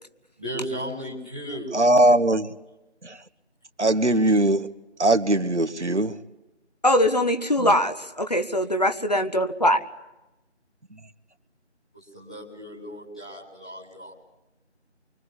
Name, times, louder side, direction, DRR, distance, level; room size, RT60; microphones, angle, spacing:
voice 1, 0.4-1.7 11.9-14.1, equal, 5° left, -8 dB, 1.8 m, -35 dB
voice 2, 1.7-2.5 3.0-3.2 3.8-4.7 5.0-6.2 7.6-7.7, right 1 dB, 80° right, 10 dB, 1.9 m, -20 dB
voice 3, 6.8-9.8, left 1 dB, 35° left, 9 dB, 1.4 m, -22 dB
25.0 x 24.0 x 9.9 m, 0.96 s
figure-of-eight pair, 175°, 35 cm